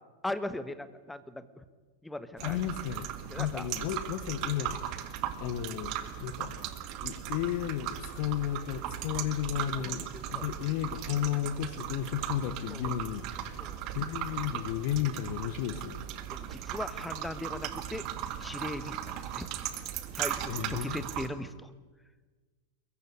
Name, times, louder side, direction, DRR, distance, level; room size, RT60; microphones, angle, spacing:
voice 1, 0.2-1.6 2.0-2.6 3.3-3.7 9.7-10.5 12.7-12.9 13.6-13.8 16.3-18.1 18.4-19.5 20.1-21.7, left 1 dB, 5° left, 13 dB, 1.5 m, -39 dB
voice 2, 2.4-6.6 7.0-10.0 10.3-16.1 20.5-21.1, left 11 dB, 45° left, 11 dB, 1.4 m, -34 dB
sound 1, 2.4-21.3, right 11 dB, 40° right, 2.0 m, -38 dB
22.0 x 22.0 x 9.9 m, 1.3 s
figure-of-eight pair, 90°, 0 cm